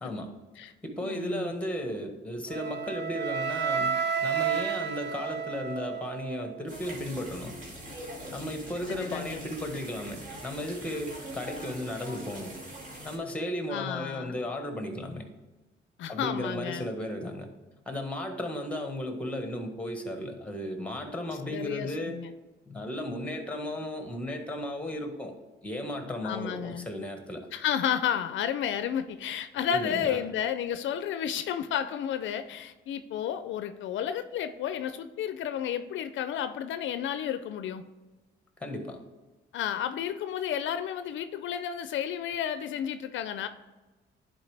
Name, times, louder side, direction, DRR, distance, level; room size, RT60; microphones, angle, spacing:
voice 1, 0.0-0.4 0.8-3.9 4.2-7.5 8.3-12.5 13.0-15.2 16.1-17.5 17.8-22.2 22.7-25.3 25.6-27.5 29.7-30.2 38.6-39.0, left 1 dB, 5° left, 5 dB, 1.4 m, -35 dB
voice 2, 1.0-1.5 8.9-9.5 13.7-14.4 16.0-16.9 21.5-22.3 26.2-26.9 27.5-37.8 39.5-43.5, left 9 dB, 75° left, 11 dB, 0.5 m, -32 dB
Wind instrument woodwind instrument, 2.5-6.5, right 7 dB, 60° right, 0.7 m, -31 dB
sound 1, 6.7-13.2, right 1 dB, 40° right, 2.2 m, -43 dB
10.5 x 4.4 x 3.4 m, 1.2 s
cardioid pair, 90°, 20 cm